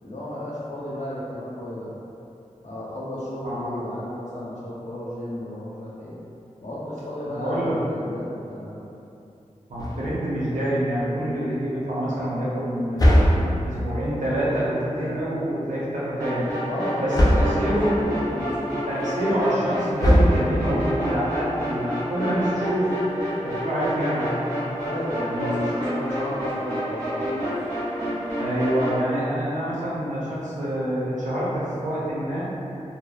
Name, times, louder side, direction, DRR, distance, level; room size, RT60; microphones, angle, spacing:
voice 1, 0.0-1.9 2.6-6.1 6.6-8.8 16.6-18.8 24.8-27.4, left 1 dB, 70° left, -8 dB, 0.7 m, -33 dB
voice 2, 3.4-3.8 7.2-7.8 9.7-13.2 13.6-16.4 17.0-17.9 18.9-22.9 23.4-24.4 25.1-25.7 28.4-32.5, right 1 dB, 85° right, -9 dB, 0.7 m, -26 dB
sound 1, 9.8-10.4 13.0-13.9 17.1-17.8 20.0-20.8, equal, 30° left, 0.4 m, -19 dB
sound 2, 16.2-29.0, equal, 25° right, 1.2 m, -29 dB
2.6 x 2.0 x 2.4 m, 2.7 s
wide cardioid pair, 60°, 13 cm